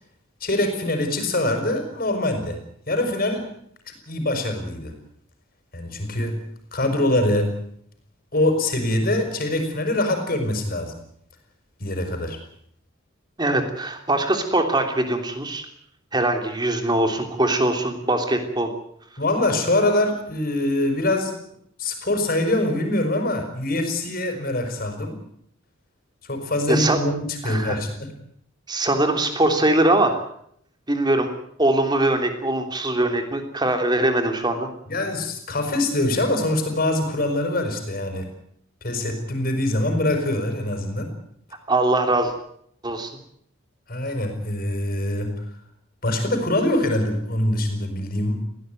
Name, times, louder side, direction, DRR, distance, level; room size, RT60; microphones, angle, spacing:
voice 1, 0.4-2.6 2.9-3.5 4.1-4.9 5.7-6.4 6.7-7.5 8.3-11.0 11.8-12.4 19.2-21.3 21.8-25.2 26.2-28.1 34.9-38.3 38.8-41.1 43.9-45.4 46.0-48.4, left 1 dB, 45° left, 6 dB, 5.6 m, -24 dB
voice 2, 13.4-15.6 16.1-18.7 26.7-27.0 27.4-27.8 28.7-30.2 30.9-31.3 31.6-34.7 41.7-42.3 42.8-43.1, right 1 dB, 20° right, 5 dB, 3.3 m, -22 dB
20.5 x 17.0 x 9.2 m, 0.70 s
head